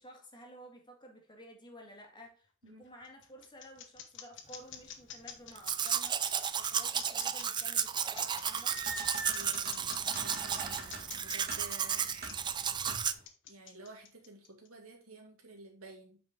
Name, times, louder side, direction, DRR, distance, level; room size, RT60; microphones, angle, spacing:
voice 1, 0.0-8.8, equal, 20° left, 1.8 m, -53 dB
sound 1, 2.6-14.7, left 9 dB, 60° left, 1.2 m, -47 dB
Domestic sounds home sounds, 5.6-13.1, right 8 dB, 20° right, 0.3 m, -33 dB
sound 2, 8.2-13.2, right 3 dB, 45° right, 2.0 m, -44 dB
voice 2, 9.2-13.2 13.5-16.2, right 2 dB, 75° right, 2.2 m, -52 dB
8.6 x 5.2 x 3.7 m
head